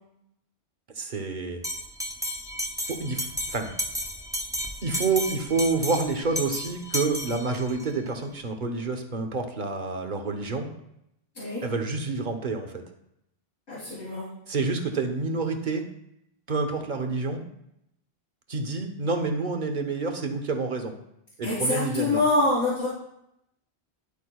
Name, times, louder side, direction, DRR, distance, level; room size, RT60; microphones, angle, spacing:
voice 1, 1.0-1.6 2.9-3.7 4.8-10.7 11.6-12.8 14.5-15.9 16.5-17.4 18.5-20.9 21.4-22.2, right 3 dB, 45° right, 5 dB, 1.1 m, -28 dB
Bell, 1.6-7.9, equal, 5° right, 0.4 m, -33 dB
voice 2, 13.7-14.2 21.4-22.9, left 2 dB, 80° left, -11 dB, 3.5 m, -25 dB
11.0 x 8.3 x 2.3 m, 0.80 s
omnidirectional pair, 1.1 m